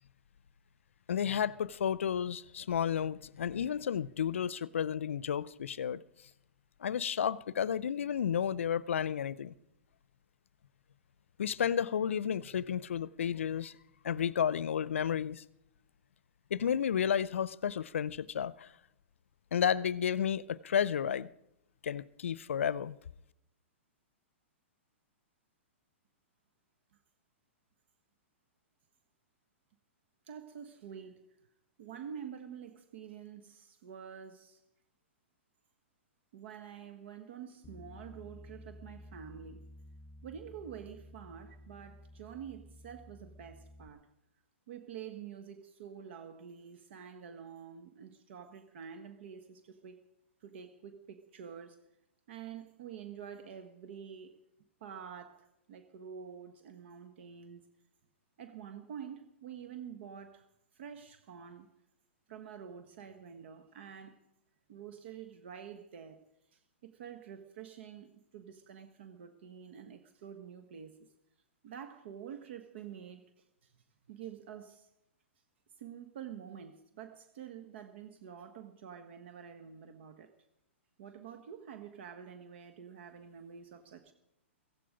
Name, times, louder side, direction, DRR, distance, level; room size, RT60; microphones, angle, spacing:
voice 1, 1.1-6.0 6.8-9.5 11.4-13.7 14.0-15.4 16.5-18.7 19.5-21.3 21.8-23.0, left 8 dB, 75° left, 0.6 m, -32 dB
voice 2, 30.2-31.3 31.8-34.6 36.3-39.6 40.2-44.1 44.7-50.0 50.4-51.8 52.3-54.4 54.8-57.7 58.4-60.5 60.7-61.7 62.3-64.2 64.7-66.3 66.5-71.1 71.6-74.9 75.8-80.3 81.0-84.1, right 8 dB, 60° right, 1.3 m, -48 dB
Bass guitar, 37.6-43.9, left 1 dB, 10° left, 2.4 m, -53 dB
16.0 x 15.5 x 5.1 m
hypercardioid pair, 120°, 7 cm